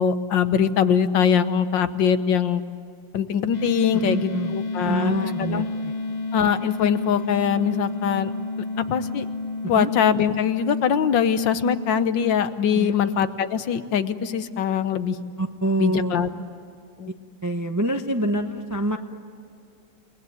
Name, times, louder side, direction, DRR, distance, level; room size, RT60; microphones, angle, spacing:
voice 1, 0.0-2.6 3.1-5.7 6.3-8.3 8.8-9.3 9.7-15.2 15.8-16.3 17.0-17.1, left 7 dB, 80° left, 11 dB, 1.7 m, -22 dB
sound 1, 3.5-13.3, left 3 dB, 25° left, 1.0 m, -31 dB
voice 2, 3.9-4.6 4.9-5.9 9.6-9.9 12.7-13.0 15.4-16.3 17.4-19.0, right 1 dB, 15° right, 6 dB, 0.6 m, -26 dB
30.0 x 20.0 x 9.3 m, 2.4 s
omnidirectional pair, 2.0 m